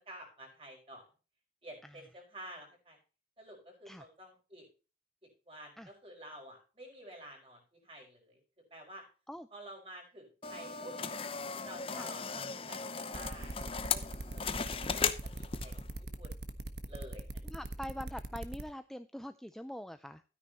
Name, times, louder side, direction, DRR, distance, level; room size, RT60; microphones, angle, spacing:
voice 1, 0.1-1.1 1.6-3.0 3.4-4.7 5.5-8.4 8.7-9.0 9.5-11.0 11.6-15.8 16.2-16.3 16.9-17.5, right 1 dB, 30° right, 1 dB, 5.4 m, -50 dB
sound 1, 10.4-15.9, left 6 dB, 30° left, 0.8 m, -37 dB
sound 2, 13.1-18.6, right 1 dB, 65° right, 1.3 m, -41 dB
voice 2, 17.4-20.2, equal, ahead, 10 dB, 0.4 m, -44 dB
13.0 x 9.8 x 3.0 m, 0.35 s
head